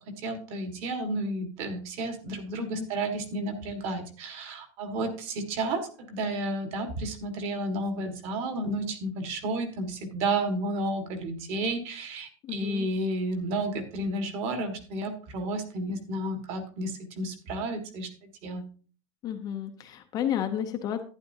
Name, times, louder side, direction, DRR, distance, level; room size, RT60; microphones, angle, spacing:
voice 1, 0.1-18.7, right 2 dB, 40° right, 7 dB, 1.7 m, -32 dB
voice 2, 2.6-3.0 12.4-12.9 19.2-21.0, left 10 dB, 25° left, 6 dB, 0.6 m, -32 dB
11.5 x 9.7 x 2.7 m, 0.40 s
supercardioid pair, 170°, 16 cm